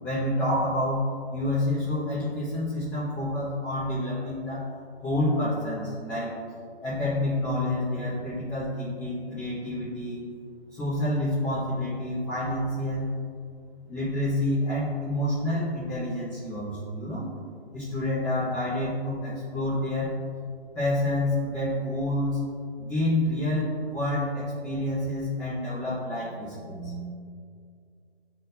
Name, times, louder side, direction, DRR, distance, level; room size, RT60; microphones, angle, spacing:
voice 1, 0.0-1.0 1.3-4.7 5.0-6.4 6.8-10.2 10.7-13.1 13.9-17.2 17.7-20.1 20.7-22.4 22.8-27.1, left 1 dB, 5° left, -13 dB, 0.8 m, -28 dB
9.4 x 4.4 x 2.6 m, 2.2 s
hypercardioid pair, 165°, 32 cm